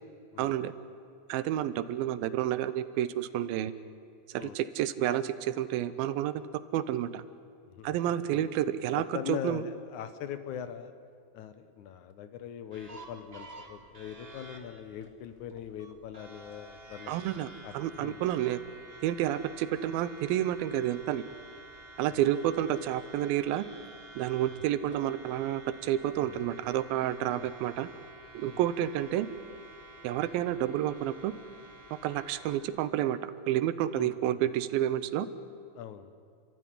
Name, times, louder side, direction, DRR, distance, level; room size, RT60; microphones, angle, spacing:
voice 1, 0.4-0.7 1.3-3.7 4.3-6.3 6.7-7.2 7.8-9.6 17.1-18.6 19.0-21.3 22.0-23.6 24.2-27.9 28.3-29.3 30.0-31.3 32.0-35.3, right 12 dB, 90° right, 13 dB, 2.6 m, -30 dB
voice 2, 9.1-10.9 11.3-17.1 17.6-18.2 19.4-19.5 22.1-22.2 26.2-26.4 27.3-27.5 28.5-28.6 34.0-34.4 35.8-36.1, left 9 dB, 70° left, 10 dB, 2.1 m, -41 dB
sound 1, 12.7-32.6, right 2 dB, 30° right, 1.1 m, -51 dB
30.0 x 13.0 x 10.0 m, 2.3 s
omnidirectional pair, 4.1 m